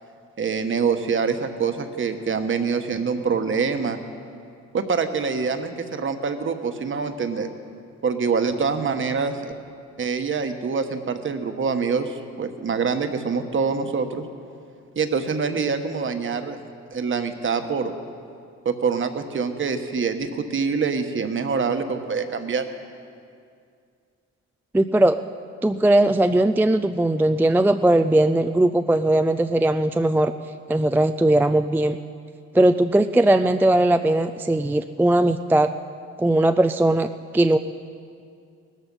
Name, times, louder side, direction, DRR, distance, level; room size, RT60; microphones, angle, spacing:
voice 1, 0.4-4.0 4.7-7.5 8.0-9.5 10.0-14.2 14.9-16.6 16.9-17.9 18.6-22.6, right 5 dB, 40° right, 7 dB, 1.3 m, -25 dB
voice 2, 24.7-25.2 25.6-30.3 30.7-32.0 32.5-35.7 36.2-37.1 37.3-37.6, right 1 dB, 5° right, 8 dB, 0.4 m, -19 dB
18.0 x 13.5 x 5.5 m, 2.3 s
cardioid pair, 90°, 30 cm